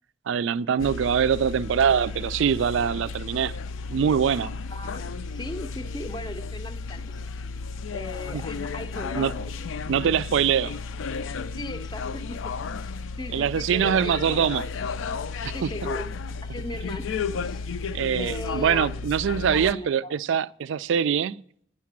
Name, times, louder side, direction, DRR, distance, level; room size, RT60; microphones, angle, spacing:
voice 1, 0.3-3.6 3.9-4.5 8.3-8.4 9.1-9.3 9.9-10.8 13.3-14.6 15.4-15.7 17.9-21.4, right 7 dB, 70° right, 0.3 m, -23 dB
sound 1, 0.8-19.7, left 4 dB, 75° left, 0.4 m, -33 dB
voice 2, 4.7-7.3 7.9-9.5 11.6-14.5 15.4-16.1 16.4-17.2 17.4-17.6 18.2-19.0 19.5-20.2, left 1 dB, 20° left, 0.5 m, -38 dB
9.4 x 6.5 x 7.3 m
head